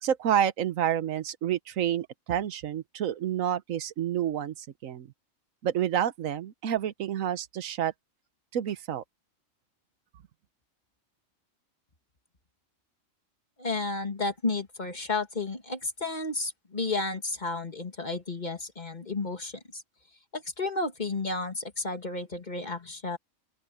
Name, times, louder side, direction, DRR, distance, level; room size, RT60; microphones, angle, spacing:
voice 1, 0.0-5.1 5.6-7.9 8.5-9.0, right 10 dB, 85° right, 1.2 m, -29 dB
voice 2, 13.6-19.8 20.3-23.2, left 3 dB, 35° left, 2.1 m, -32 dB
open air
omnidirectional pair, 1.3 m